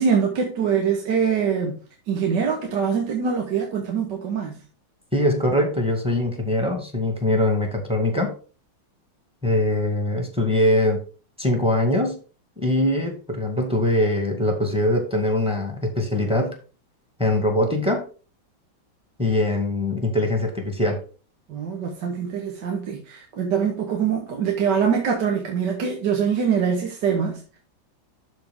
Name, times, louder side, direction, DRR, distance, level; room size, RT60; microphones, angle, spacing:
voice 1, 0.0-1.8 2.1-4.6 21.5-27.6, right 6 dB, 60° right, 1.7 m, -24 dB
voice 2, 5.1-8.3 9.4-11.0 11.4-12.2 12.6-16.6 17.2-18.0 19.2-21.0, left 1 dB, 5° right, 1.7 m, -22 dB
12.5 x 4.3 x 3.6 m
omnidirectional pair, 2.3 m